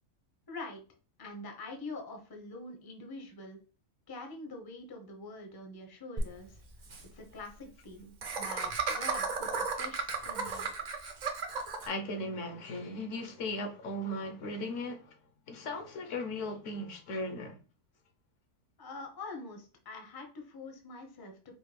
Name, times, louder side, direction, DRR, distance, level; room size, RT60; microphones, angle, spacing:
voice 1, 0.5-0.8 1.2-3.6 4.1-6.6 7.1-10.7 18.8-21.5, left 2 dB, 25° left, 0.4 m, -45 dB
Laughter, 6.2-6.3 6.5-6.6 6.8-7.0 8.2-11.9, right 5 dB, 50° right, 0.5 m, -34 dB
voice 2, 11.9-15.2 15.5-17.6, left 1 dB, 65° left, 0.9 m, -37 dB
5.0 x 2.2 x 3.2 m
omnidirectional pair, 1.5 m